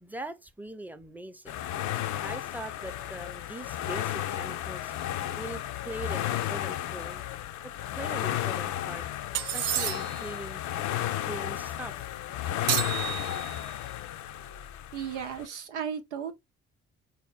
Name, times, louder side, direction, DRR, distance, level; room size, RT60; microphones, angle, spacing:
voice 1, 0.0-1.6 2.1-4.9 5.4-7.2 7.9-9.1 9.4-10.6 11.3-12.2, right 1 dB, 5° right, 0.6 m, -41 dB
sound 1, 1.5-15.5, left 12 dB, 55° left, 0.5 m, -33 dB
sound 2, 9.3-10.3 12.7-13.8, right 12 dB, 50° right, 0.4 m, -31 dB
voice 2, 14.9-16.3, right 8 dB, 90° right, 0.6 m, -35 dB
4.0 x 2.8 x 3.4 m
figure-of-eight pair, 40°, 34 cm